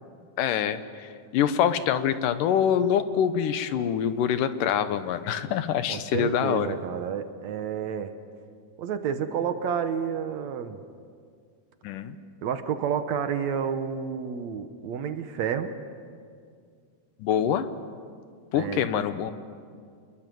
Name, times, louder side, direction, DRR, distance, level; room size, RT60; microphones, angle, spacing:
voice 1, 0.4-6.8 11.8-12.2 17.2-17.7 18.5-19.3, left 9 dB, 85° left, 11 dB, 2.6 m, -25 dB
voice 2, 5.9-8.1 8.8-10.8 12.4-15.7 18.5-19.0, right 7 dB, 70° right, 9 dB, 2.1 m, -30 dB
27.5 x 22.0 x 7.8 m, 2.2 s
omnidirectional pair, 3.7 m